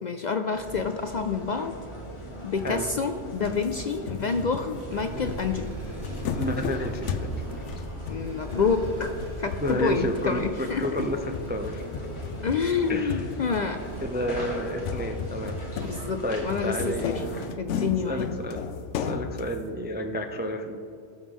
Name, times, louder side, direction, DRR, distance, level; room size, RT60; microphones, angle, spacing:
voice 1, 0.0-1.7 2.4-5.7 8.1-9.1 9.4-10.9 12.4-13.8 15.8-17.2 17.6-18.2, left 5 dB, 55° left, 7 dB, 0.5 m, -28 dB
sound 1, 0.5-17.5, left 1 dB, 25° left, 1.4 m, -40 dB
sound 2, 2.5-3.2 3.4-10.4 10.8-14.1 14.8-19.7, left 5 dB, 90° left, 1.0 m, -35 dB
sound 3, 4.8-15.2 15.8-15.9 16.4-16.5 16.8-16.9, right 1 dB, 65° right, 1.8 m, -40 dB
voice 2, 6.4-7.3 9.6-12.0 12.9-13.2 14.0-15.6 16.2-17.5 18.0-18.6 19.0-20.8, equal, 15° right, 5 dB, 0.3 m, -31 dB
18.0 x 6.4 x 3.6 m, 2.7 s
omnidirectional pair, 1.2 m